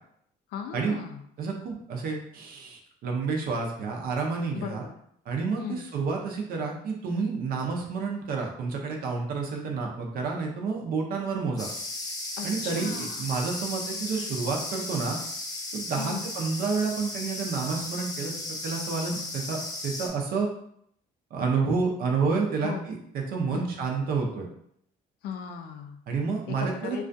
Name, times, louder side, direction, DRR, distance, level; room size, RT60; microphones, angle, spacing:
voice 1, 0.5-1.2 4.5-5.0 5.6-5.8 12.4-13.2 16.0-16.3 22.6-22.8 23.5-23.7 25.2-26.0 26.5-27.0, left 7 dB, 70° left, 6 dB, 0.4 m, -37 dB
voice 2, 1.4-4.9 5.3-11.7 12.4-15.2 15.7-18.3 18.6-20.5 21.3-24.5 26.1-27.0, right 4 dB, 60° right, 1 dB, 0.6 m, -29 dB
sound 1, 11.6-20.1, left 2 dB, 20° left, 0.5 m, -35 dB
2.3 x 2.3 x 2.5 m, 0.69 s
cardioid pair, 110°, 17 cm